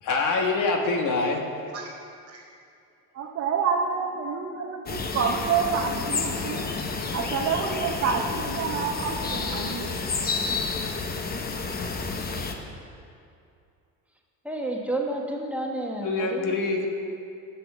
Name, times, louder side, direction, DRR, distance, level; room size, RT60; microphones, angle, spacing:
voice 1, 0.0-1.4 16.0-16.9, left 3 dB, 60° left, 2 dB, 1.4 m, -25 dB
voice 2, 3.1-6.7 7.1-9.9, right 6 dB, 40° right, 1 dB, 0.8 m, -28 dB
sound 1, 4.9-12.5, left 4 dB, 25° left, 0.9 m, -30 dB
voice 3, 14.4-16.5, right 1 dB, 5° right, 0 dB, 1.3 m, -30 dB
10.5 x 7.0 x 6.1 m, 2.5 s
cardioid pair, 115°, 35 cm